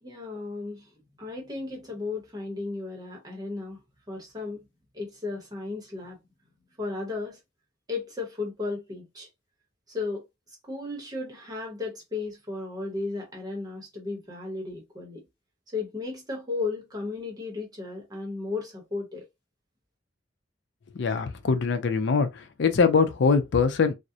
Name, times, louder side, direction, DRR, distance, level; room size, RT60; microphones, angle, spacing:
voice 1, 0.0-0.9 1.2-3.8 4.1-4.6 4.9-6.2 6.8-7.4 7.9-9.3 9.9-10.2 10.6-15.2 15.7-19.2, left 3 dB, 20° right, 0.8 m, -34 dB
voice 2, 20.9-23.9, left 5 dB, 65° left, 0.5 m, -23 dB
2.3 x 2.0 x 2.7 m
head